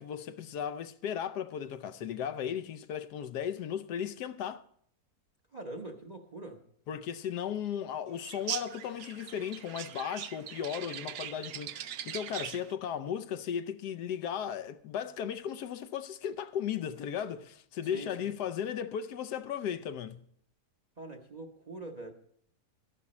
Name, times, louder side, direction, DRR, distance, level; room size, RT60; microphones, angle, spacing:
voice 1, 0.0-4.6 6.9-20.2, left 8 dB, 80° left, 1.2 m, -36 dB
voice 2, 5.5-6.6 17.9-18.3 21.0-22.1, right 2 dB, 30° right, 0.8 m, -43 dB
sound 1, 8.2-12.7, right 11 dB, 70° right, 1.0 m, -41 dB
12.5 x 11.0 x 4.2 m
omnidirectional pair, 1.8 m